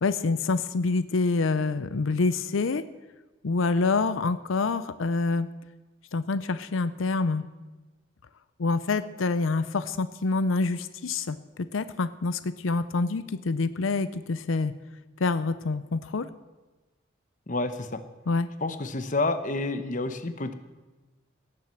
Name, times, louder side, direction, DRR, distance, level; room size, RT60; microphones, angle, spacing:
voice 1, 0.0-2.8 3.4-5.5 6.1-7.4 8.6-14.7 15.2-16.3 18.3-18.5, left 3 dB, 85° left, 13 dB, 0.6 m, -26 dB
voice 2, 17.5-18.0 18.6-20.5, left 2 dB, 40° left, 10 dB, 0.9 m, -29 dB
17.0 x 7.7 x 7.5 m, 1.2 s
head